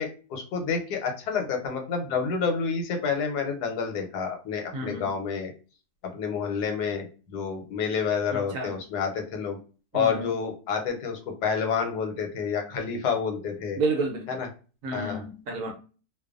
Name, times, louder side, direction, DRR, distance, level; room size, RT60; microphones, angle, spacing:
voice 1, 0.0-5.5 6.1-9.6 9.9-13.8 14.3-14.5 14.9-15.2, left 6 dB, 90° left, 1.2 m, -29 dB
voice 2, 4.7-5.1 8.3-8.8 9.9-10.3 13.8-14.3 14.8-15.7, right 3 dB, 65° right, 0.9 m, -30 dB
2.5 x 2.2 x 2.4 m
omnidirectional pair, 1.7 m